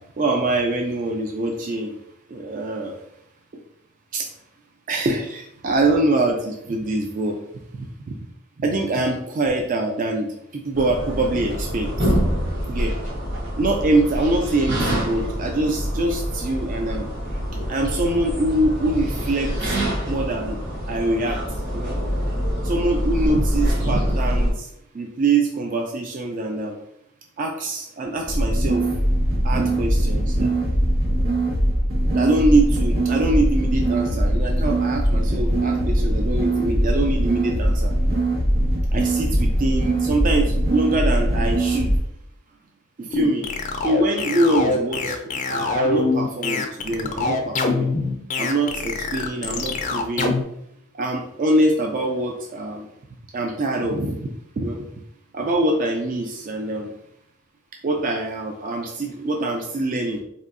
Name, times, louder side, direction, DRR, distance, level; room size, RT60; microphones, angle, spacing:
voice 1, 0.2-1.9 2.3-3.0 3.5-3.6 4.1-4.3 4.9-7.4 8.1-8.2 8.6-12.1 12.7-13.0 13.6-17.1 17.7-19.8 20.1-20.6 20.9-21.4 21.7-22.0 22.6-24.7 24.9-26.8 27.4-28.9 29.4-30.5 32.1-37.9 38.6-41.9 43.0-43.5 43.8-45.2 45.4-47.9 48.3-50.4 50.9-52.9 53.3-54.8 55.3-56.9 57.8-60.2, right 2 dB, 40° right, 2 dB, 0.3 m, -24 dB
sound 1, 10.7-24.5, equal, 55° right, 1.1 m, -25 dB
sound 2, 28.3-42.0, right 1 dB, 90° right, 1.4 m, -21 dB
sound 3, 43.1-50.4, left 3 dB, 35° left, 0.4 m, -24 dB
4.2 x 2.6 x 2.5 m, 0.74 s
head